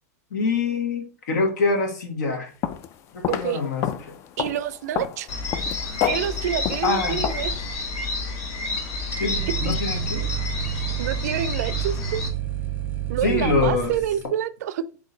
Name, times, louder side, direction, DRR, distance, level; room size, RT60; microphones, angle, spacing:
voice 1, 0.3-2.5 3.1-4.1 6.8-7.2 9.2-10.3 13.2-13.9, left 4 dB, 75° left, 1.4 m, -25 dB
sound 1, 2.6-2.9 3.2-7.6, left 10 dB, 30° left, 0.3 m, -29 dB
voice 2, 3.3-3.6 4.4-5.3 6.0-7.5 9.6-9.7 10.7-12.2 13.1-14.8, right 11 dB, 65° right, 0.4 m, -28 dB
sound 2, 5.3-12.3, left 3 dB, 50° left, 1.2 m, -30 dB
sound 3, 7.4-8.4 8.7-8.8 9.0-14.3, right 13 dB, 20° right, 0.6 m, -30 dB
3.8 x 3.1 x 3.9 m
hypercardioid pair, 135°, 9 cm